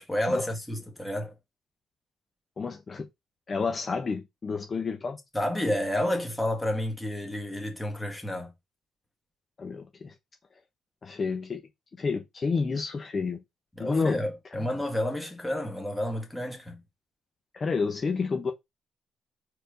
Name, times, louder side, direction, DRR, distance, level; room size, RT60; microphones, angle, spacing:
voice 1, 0.0-1.3 5.3-8.5 13.8-16.8, left 1 dB, 5° left, 2.1 m, -30 dB
voice 2, 2.6-3.1 3.5-5.2 9.6-10.1 11.0-11.6 12.0-13.4 13.8-14.2 17.5-18.5, left 4 dB, 40° left, 1.1 m, -29 dB
4.5 x 4.4 x 5.2 m
cardioid pair, 90°, 0 cm